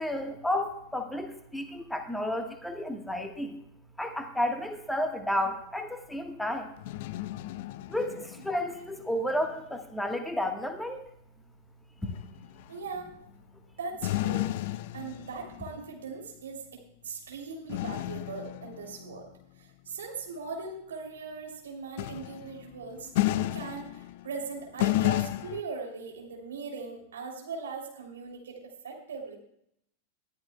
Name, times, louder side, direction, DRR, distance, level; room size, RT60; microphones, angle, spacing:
voice 1, 0.0-3.6 4.0-6.7 7.9-11.0 12.0-12.1, left 1 dB, 5° left, 6 dB, 1.3 m, -32 dB
sound 1, 6.8-8.9 9.3-9.5 12.1-12.6 13.1-13.3 14.0-16.0 17.7-19.2 22.0-24.5 24.8-25.6, left 16 dB, 50° left, 0.3 m, -32 dB
voice 2, 12.7-13.1 13.8-14.5 14.9-19.3 19.6-29.3, right 4 dB, 65° right, 0 dB, 3.0 m, -40 dB
21.0 x 12.5 x 2.2 m, 0.74 s
figure-of-eight pair, 90°, 0 cm